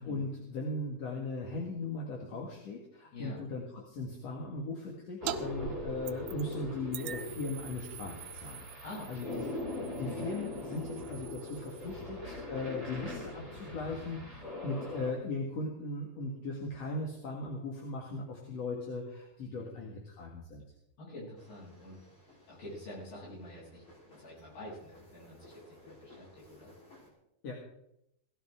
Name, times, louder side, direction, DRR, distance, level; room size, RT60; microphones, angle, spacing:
voice 1, 0.0-8.8 9.1-9.5 10.0-20.6 27.4-27.6, left 2 dB, 50° left, -1 dB, 2.6 m, -38 dB
voice 2, 3.1-3.4 8.8-9.4 19.5-20.0 21.0-22.0 22.5-26.7, left 1 dB, 75° left, -6 dB, 9.6 m, -47 dB
sound 1, 5.2-15.1, left 2 dB, 10° left, 2.7 m, -41 dB
sound 2, 5.3-5.4 5.6-6.5 6.9-12.0, right 12 dB, 80° right, 1.9 m, -44 dB
sound 3, 21.3-27.1, left 1 dB, 35° left, 4.5 m, -59 dB
17.5 x 13.5 x 3.7 m, 0.79 s
omnidirectional pair, 4.4 m